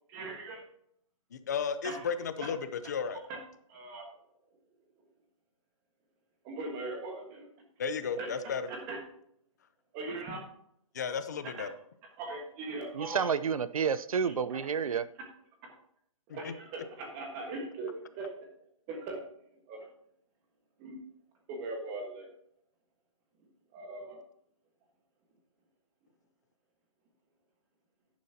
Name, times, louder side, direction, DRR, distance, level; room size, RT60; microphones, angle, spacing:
voice 1, 0.1-0.6 1.8-2.0 2.4-2.5 3.3-3.4 3.7-4.2 5.0-5.1 6.4-7.5 8.2-8.3 8.7-9.0 9.9-10.4 11.4-11.5 12.2-13.3 14.2-14.3 14.6-14.7 16.3-18.5 18.9-19.2 19.5-19.9 20.8-21.0 21.5-22.3 23.4-24.2, right 2 dB, 15° right, 2 dB, 1.5 m, -40 dB
voice 2, 1.3-3.2 7.8-8.7 10.9-11.7 16.3-16.5, left 6 dB, 30° left, 11 dB, 0.7 m, -34 dB
voice 3, 13.0-15.0, right 6 dB, 85° right, 15 dB, 0.7 m, -30 dB
10.5 x 9.3 x 2.9 m, 0.71 s
hypercardioid pair, 175°, 18 cm